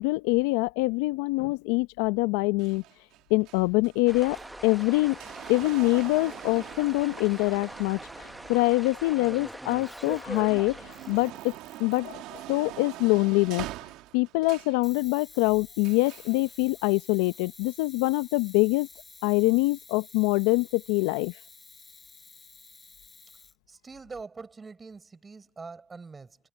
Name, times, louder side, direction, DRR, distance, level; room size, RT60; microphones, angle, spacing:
voice 1, 0.0-2.8 3.3-4.4 4.6-5.2 5.5-8.0 8.5-10.8 11.1-11.5 11.8-13.7 14.1-18.9 19.2-21.3, left 23 dB, 80° left, 0.8 m, -24 dB
sound 1, 2.6-9.8 10.3-14.8 15.8-16.4 17.3-17.4, right 16 dB, 70° right, 2.5 m, -44 dB
sound 2, 4.1-11.4, right 1 dB, 10° right, 1.1 m, -42 dB
Camera, 9.7-10.5 10.9-12.4 14.8-23.6, left 4 dB, 25° left, 7.0 m, -51 dB
voice 2, 23.7-26.4, right 4 dB, 25° right, 4.9 m, -43 dB
supercardioid pair, 75°, 0 cm